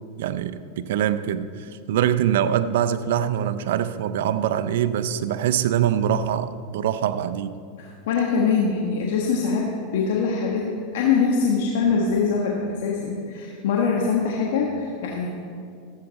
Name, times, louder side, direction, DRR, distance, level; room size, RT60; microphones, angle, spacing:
voice 1, 0.2-7.5, right 10 dB, 75° right, 13 dB, 0.5 m, -24 dB
voice 2, 7.8-15.3, left 5 dB, 70° left, -2 dB, 1.3 m, -23 dB
14.5 x 8.1 x 4.1 m, 2.3 s
hypercardioid pair, 105°, 0 cm